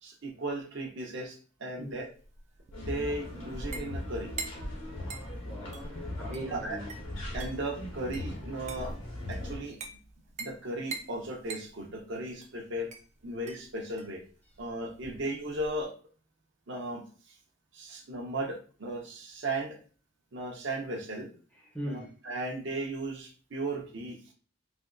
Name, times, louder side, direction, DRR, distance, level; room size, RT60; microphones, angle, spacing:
voice 1, 0.0-2.1 2.8-4.3 6.5-6.8 7.3-8.9 9.3-9.8 10.4-12.9 13.2-14.2 14.6-15.9 16.7-17.0 17.7-19.8 20.3-21.3 21.8-24.3, right 2 dB, 60° right, 0.8 m, -36 dB
sound 1, 1.9-15.8, right 4 dB, 35° right, 0.4 m, -46 dB
sound 2, 2.7-9.6, left 1 dB, 70° left, 1.5 m, -39 dB
voice 2, 5.4-6.9 15.1-15.2 21.6-22.1, right 1 dB, 10° left, 0.7 m, -40 dB
3.4 x 2.8 x 2.5 m
head